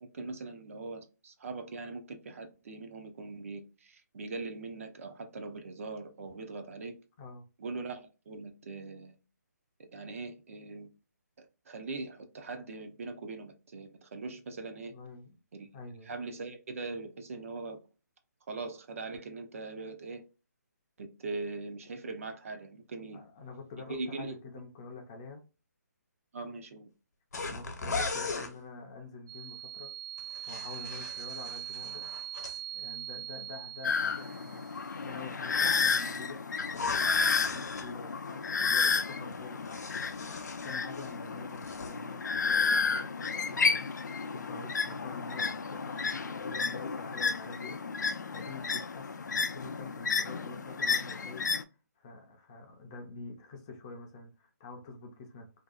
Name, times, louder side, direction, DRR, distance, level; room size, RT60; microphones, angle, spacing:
voice 1, 0.0-6.9 7.6-9.2 9.9-10.9 11.4-15.0 15.5-15.7 16.0-17.8 18.5-20.2 21.0-23.2 23.9-24.4 26.3-26.9, right 3 dB, 50° right, 0.5 m, -41 dB
voice 2, 14.9-15.3 15.7-16.1 23.1-25.4 27.5-29.9 30.5-32.1 32.7-36.4 36.7-40.1 40.6-51.5 52.0-55.5, left 3 dB, 20° left, 0.4 m, -47 dB
sound 1, 27.3-28.5 30.2-32.6 36.7-37.9 39.3-41.2 41.5-41.9, left 3 dB, 70° left, 0.8 m, -38 dB
sound 2, 29.3-34.9, right 12 dB, 80° right, 1.3 m, -42 dB
sound 3, 33.8-51.6, left 5 dB, 90° left, 0.4 m, -32 dB
2.6 x 2.2 x 2.3 m
hypercardioid pair, 160°, 9 cm